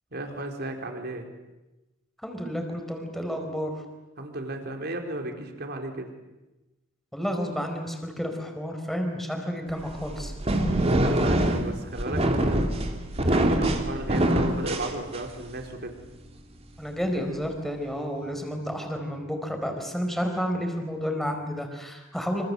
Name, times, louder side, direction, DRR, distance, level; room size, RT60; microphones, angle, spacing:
voice 1, 0.1-1.3 4.2-6.1 10.8-12.8 13.2-15.9, right 2 dB, 55° right, 4 dB, 4.2 m, -35 dB
voice 2, 2.2-3.7 7.1-10.3 16.8-22.4, equal, ahead, 4 dB, 4.7 m, -31 dB
sound 1, 9.8-15.5, right 1 dB, 30° right, 2.8 m, -24 dB
26.5 x 26.0 x 7.9 m, 1.0 s
head